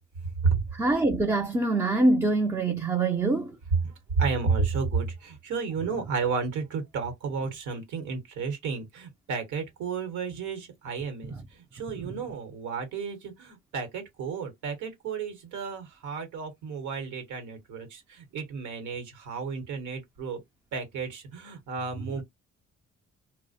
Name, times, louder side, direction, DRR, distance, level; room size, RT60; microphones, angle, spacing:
voice 1, 0.7-3.5, right 2 dB, 10° right, 0.3 m, -24 dB
voice 2, 3.8-20.4 20.7-22.2, right 5 dB, 80° right, 1.0 m, -32 dB
2.3 x 2.0 x 2.6 m
cardioid pair, 90°, 30 cm